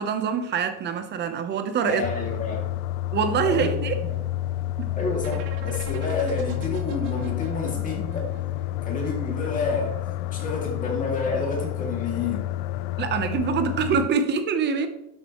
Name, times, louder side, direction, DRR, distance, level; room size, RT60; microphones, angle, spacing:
voice 1, 0.0-2.0 3.1-4.0 4.8-4.9 13.0-14.9, right 6 dB, 30° right, 0.9 m, -24 dB
voice 2, 1.9-2.7 3.4-3.7 4.1-4.2 4.9-8.3 8.8-10.0 10.3-12.5, left 3 dB, 20° left, 2.6 m, -29 dB
sound 1, 2.0-14.1, left 14 dB, 70° left, 0.5 m, -30 dB
sound 2, 5.2-9.1, right 6 dB, 65° right, 1.5 m, -42 dB
12.0 x 7.7 x 3.1 m
cardioid pair, 165°, 35 cm